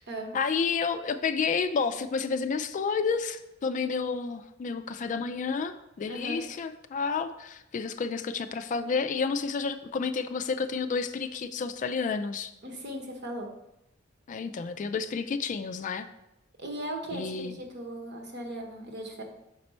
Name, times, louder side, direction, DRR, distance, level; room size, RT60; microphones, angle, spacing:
voice 1, 0.3-12.5 14.3-16.1 17.1-17.6, left 5 dB, 40° left, 10 dB, 0.3 m, -30 dB
voice 2, 6.1-6.4 12.6-13.5 16.6-19.2, right 1 dB, 55° right, 2 dB, 1.1 m, -37 dB
5.9 x 4.3 x 4.3 m, 0.88 s
head